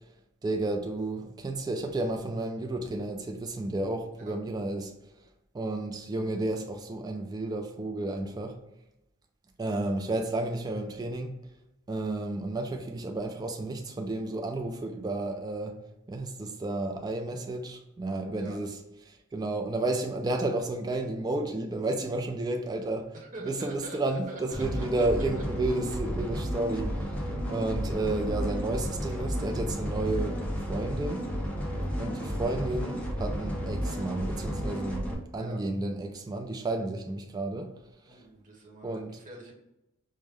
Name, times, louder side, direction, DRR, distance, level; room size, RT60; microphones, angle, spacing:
voice 1, 0.4-4.9 5.5-8.6 9.6-11.3 11.9-15.7 16.1-18.7 19.1-23.1 23.4-26.9 27.5-30.4 30.7-31.3 32.0-37.7 38.8-39.1, right 2 dB, 20° right, 0.3 m, -32 dB
voice 2, 23.1-24.8 25.3-25.4 35.3-35.6 38.0-39.5, right 1 dB, 40° right, 1.0 m, -45 dB
sound 1, 24.5-35.1, equal, 5° left, 0.7 m, -32 dB
5.1 x 2.1 x 3.2 m
head